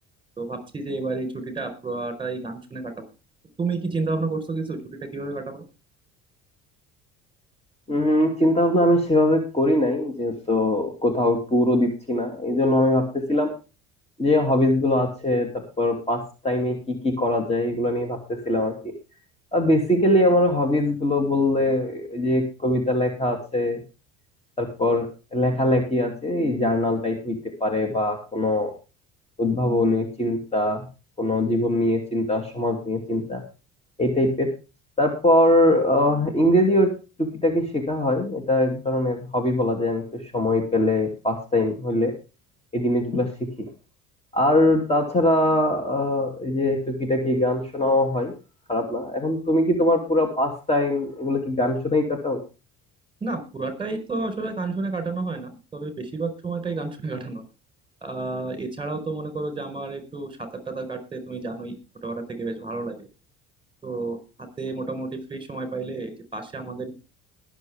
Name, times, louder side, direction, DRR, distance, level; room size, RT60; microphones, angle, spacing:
voice 1, 0.4-3.0 3.6-5.6 53.2-57.4 58.0-61.7 62.0-63.1 63.8-66.9, right 3 dB, 15° right, 9 dB, 4.7 m, -31 dB
voice 2, 7.9-13.5 14.2-18.9 19.5-23.8 24.6-28.7 29.4-30.9 31.2-33.4 34.0-34.5 35.0-36.9 37.2-42.1 42.7-43.7 44.3-48.3 48.7-52.4, left 1 dB, 20° left, 3 dB, 2.8 m, -22 dB
20.5 x 7.4 x 3.6 m, 0.31 s
supercardioid pair, 90°, 32 cm